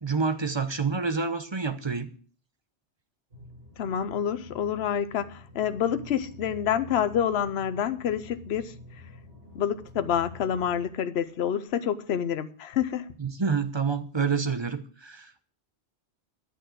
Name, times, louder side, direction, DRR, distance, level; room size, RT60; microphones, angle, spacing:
voice 1, 0.0-2.1 13.2-15.4, right 5 dB, 25° right, 0.8 m, -28 dB
sound 1, 3.3-10.9, left 3 dB, 85° right, 8.4 m, -48 dB
voice 2, 3.8-8.7 9.5-13.1, left 9 dB, 70° left, 1.0 m, -28 dB
11.0 x 6.6 x 7.7 m
omnidirectional pair, 1.2 m